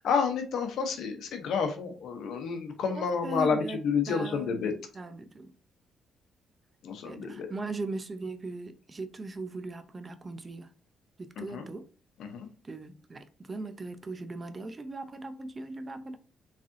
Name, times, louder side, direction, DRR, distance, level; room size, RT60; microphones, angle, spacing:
voice 1, 0.0-4.7 6.8-7.5 11.4-11.7 12.2-12.5, left 5 dB, 75° left, 0.8 m, -30 dB
voice 2, 2.9-3.8 4.1-5.5 7.0-10.7 11.2-11.8 12.6-16.2, right 2 dB, 30° right, 0.5 m, -39 dB
3.6 x 3.3 x 2.6 m
cardioid pair, 90°, 0 cm